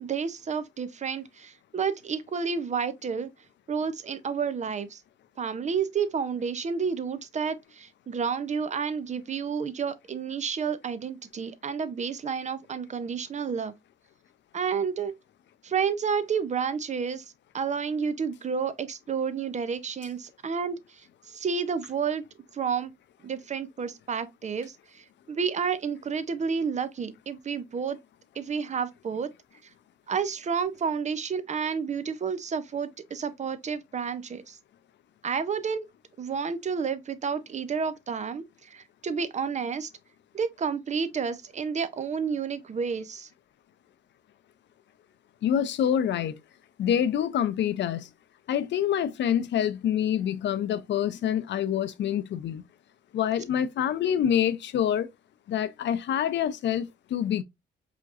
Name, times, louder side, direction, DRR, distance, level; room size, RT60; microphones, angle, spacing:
voice 1, 0.0-3.3 3.7-5.0 5.4-13.7 14.5-15.1 15.6-17.2 17.5-20.8 21.3-22.2 22.5-22.9 23.2-28.0 28.4-29.3 30.1-34.6 35.2-35.9 36.2-39.9 40.3-43.3, right 6 dB, 35° right, 0.6 m, -30 dB
voice 2, 45.4-46.4 46.8-48.1 48.5-52.6 53.1-55.1 55.5-57.4, left 9 dB, 65° left, 0.6 m, -26 dB
4.9 x 3.0 x 2.4 m
cardioid pair, 90°, 20 cm